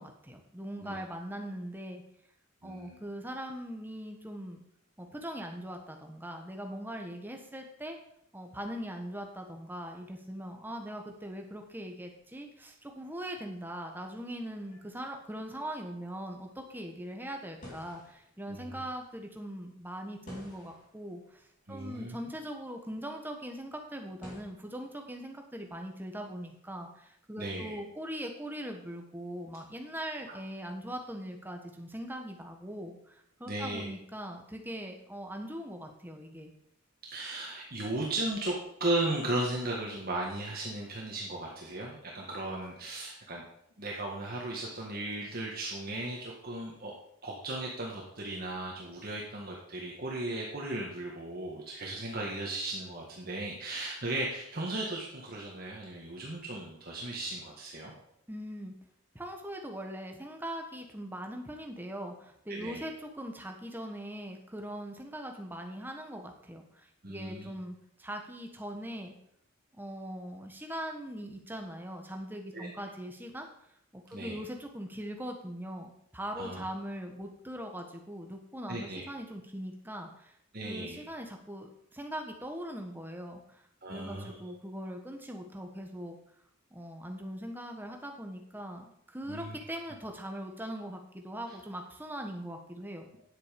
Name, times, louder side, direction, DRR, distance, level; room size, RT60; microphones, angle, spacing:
voice 1, 0.0-2.0 2.6-4.6 5.0-8.0 8.3-36.5 58.3-58.7 59.1-69.1 69.7-73.5 73.9-80.4 80.6-83.6 83.9-86.1 86.7-93.1, equal, 10° right, 3 dB, 1.3 m, -41 dB
voice 2, 2.6-3.0 18.5-18.8 21.7-22.2 27.4-27.8 30.3-30.4 33.5-33.9 37.1-38.5 38.8-43.4 43.8-46.9 47.2-57.9 62.5-62.9 67.0-67.5 72.5-72.7 74.1-74.4 76.4-76.7 78.7-79.1 80.5-81.0 83.8-84.4 89.3-89.6, right 2 dB, 45° right, -2 dB, 1.6 m, -36 dB
sound 1, 11.1-24.4, left 1 dB, 35° left, 3.5 m, -56 dB
10.0 x 7.9 x 5.2 m, 0.73 s
head